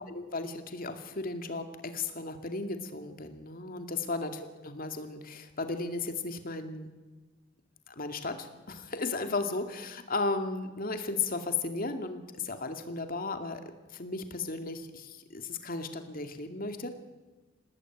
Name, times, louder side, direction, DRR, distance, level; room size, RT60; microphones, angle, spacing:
voice 1, 0.1-4.3 4.6-6.9 7.9-13.6 13.9-16.9, left 3 dB, 50° left, 7 dB, 2.4 m, -35 dB
27.0 x 18.5 x 9.3 m, 1.2 s
head